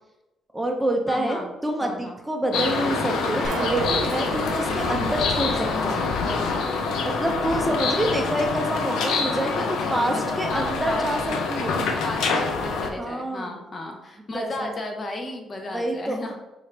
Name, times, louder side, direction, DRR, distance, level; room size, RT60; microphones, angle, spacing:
voice 1, 0.5-6.0 7.0-9.6 9.9-11.8 13.0-13.6 14.3-14.7 15.7-16.2, right 1 dB, 10° right, 2 dB, 0.6 m, -27 dB
voice 2, 1.1-1.5 1.8-2.2 9.6-11.1 12.0-16.4, left 2 dB, 35° left, 3 dB, 0.6 m, -34 dB
sound 1, 2.5-12.9, left 4 dB, 80° left, 0.5 m, -26 dB
sound 2, 3.4-6.2, right 4 dB, 70° right, 0.7 m, -34 dB
3.9 x 2.5 x 3.2 m, 1.0 s
cardioid pair, 90°, 0 cm